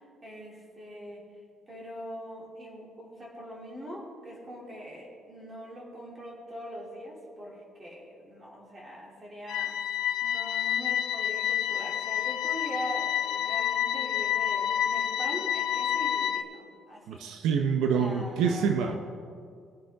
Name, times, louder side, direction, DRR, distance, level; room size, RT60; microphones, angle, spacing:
voice 1, 0.2-1.2 1.7-9.7 10.2-17.3 17.9-19.0, equal, 20° right, -3 dB, 2.7 m, -42 dB
sound 1, 9.5-16.4, left 10 dB, 70° left, 0.6 m, -29 dB
voice 2, 17.1-18.9, right 6 dB, 75° right, 5 dB, 0.8 m, -26 dB
20.5 x 7.7 x 3.5 m, 2.3 s
cardioid pair, 155°, 0 cm